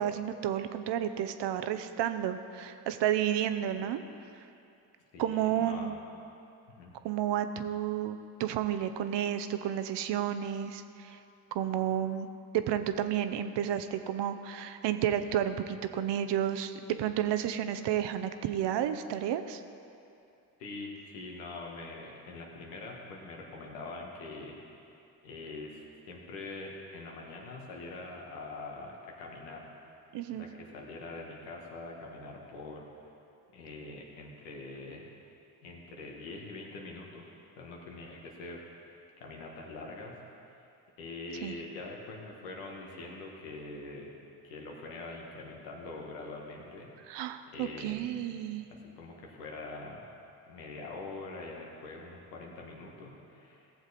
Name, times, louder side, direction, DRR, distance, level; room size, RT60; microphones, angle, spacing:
voice 1, 0.0-4.0 4.3-4.4 5.2-5.9 7.0-11.2 11.5-12.3 12.5-19.6 30.1-30.5 41.4-41.5 47.1-48.7, right 10 dB, 60° right, 10 dB, 0.8 m, -31 dB
voice 2, 5.1-6.0 6.7-6.9 20.6-24.6 25.2-29.7 30.3-33.1 33.5-35.0 35.6-37.3 37.6-40.2 41.0-44.1 44.4-46.9 47.5-48.1 48.8-50.1 50.5-53.7, left 3 dB, 90° left, -1 dB, 1.6 m, -44 dB
15.5 x 7.3 x 4.2 m, 2.6 s
hypercardioid pair, 60°, 47 cm